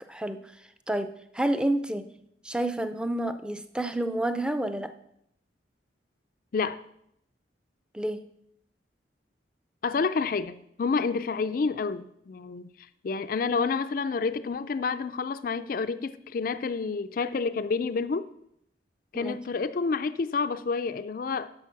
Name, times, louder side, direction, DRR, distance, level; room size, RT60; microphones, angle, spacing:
voice 1, 1.3-2.1 2.4-4.9 7.9-8.2 19.1-19.4, right 1 dB, 5° right, 0.5 m, -29 dB
voice 2, 9.8-12.7 13.0-18.3 19.1-21.5, left 4 dB, 50° left, 0.4 m, -29 dB
10.5 x 6.7 x 5.7 m
head